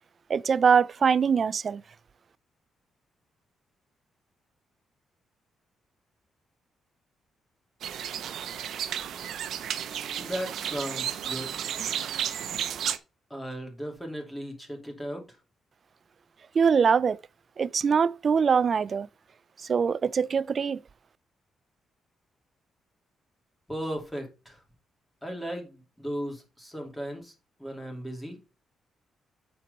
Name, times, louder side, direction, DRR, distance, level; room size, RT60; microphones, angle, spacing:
voice 1, 0.3-1.8 16.5-17.2 17.6-19.1 19.7-20.8, right 6 dB, 40° right, 0.3 m, -23 dB
sound 1, 7.8-13.0, right 9 dB, 75° right, 0.7 m, -33 dB
voice 2, 10.1-11.6 13.3-15.4 23.7-24.6 25.2-27.3 27.6-28.4, equal, 5° left, 2.6 m, -36 dB
8.8 x 4.6 x 5.2 m
cardioid pair, 125°, 0 cm